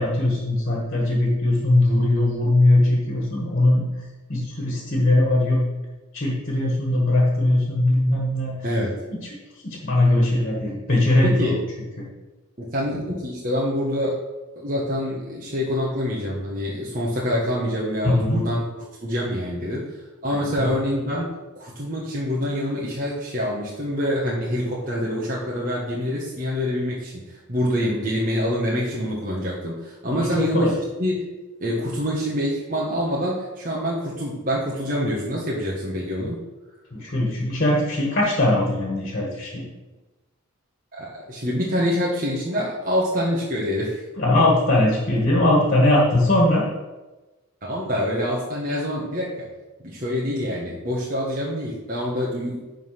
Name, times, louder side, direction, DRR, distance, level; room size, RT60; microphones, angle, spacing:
voice 1, 0.0-3.8 4.3-5.6 6.1-8.5 9.1-9.3 9.6-11.5 12.0-12.1 18.0-18.4 20.3-20.5 30.1-30.7 36.9-39.7 44.2-46.6, left 1 dB, 40° left, -3 dB, 1.8 m, -20 dB
voice 2, 11.2-11.6 12.6-14.2 14.6-18.7 19.0-20.0 20.2-21.3 21.5-30.7 31.0-31.2 31.6-36.4 40.9-44.0 47.6-49.5 49.8-52.8, equal, 40° right, -5 dB, 1.4 m, -26 dB
10.5 x 3.9 x 5.9 m, 1.2 s
head